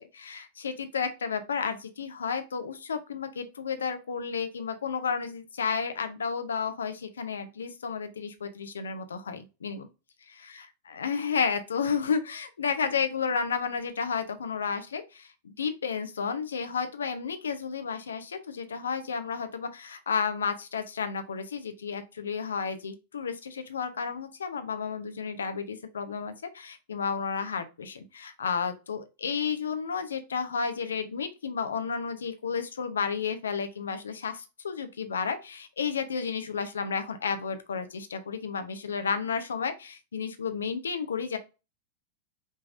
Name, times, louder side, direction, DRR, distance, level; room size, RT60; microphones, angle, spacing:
voice 1, 0.0-9.9 10.3-41.4, left 6 dB, 70° left, 0.7 m, -32 dB
5.4 x 3.3 x 2.6 m
figure-of-eight pair, 90°, 0 cm